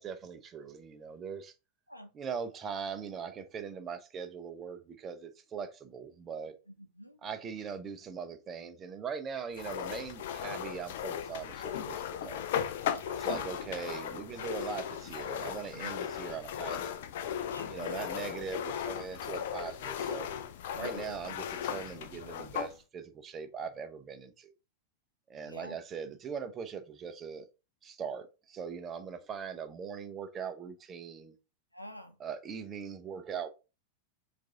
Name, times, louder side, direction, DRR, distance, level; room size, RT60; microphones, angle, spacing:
voice 1, 0.0-1.5 2.1-6.5 7.2-12.4 13.1-17.0 17.7-20.3 20.7-24.5 25.3-27.4 27.8-31.3 32.2-33.5, right 6 dB, 25° right, 0.6 m, -41 dB
voice 2, 6.7-7.5 13.0-13.2 15.7-15.9 17.5-18.1 20.7-21.2 25.4-25.8 31.7-32.2, equal, 90° left, 0.7 m, -48 dB
sound 1, 9.5-22.7, left 9 dB, 55° left, 0.4 m, -37 dB
4.6 x 2.6 x 3.7 m
figure-of-eight pair, 90°, 0 cm